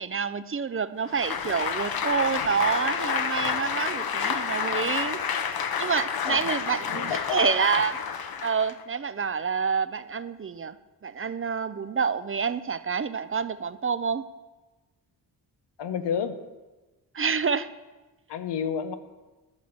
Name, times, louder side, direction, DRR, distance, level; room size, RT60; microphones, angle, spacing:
voice 1, 0.0-5.2 5.8-8.0 8.4-10.8 11.0-14.2 17.1-17.7, right 6 dB, 30° right, 14 dB, 0.6 m, -28 dB
Applause, 1.1-8.8, left 7 dB, 60° left, 1.0 m, -29 dB
voice 2, 6.9-7.5 15.8-16.4 18.3-18.9, left 7 dB, 80° left, 10 dB, 1.0 m, -30 dB
12.5 x 5.9 x 7.9 m, 1.2 s
cardioid pair, 65°, 41 cm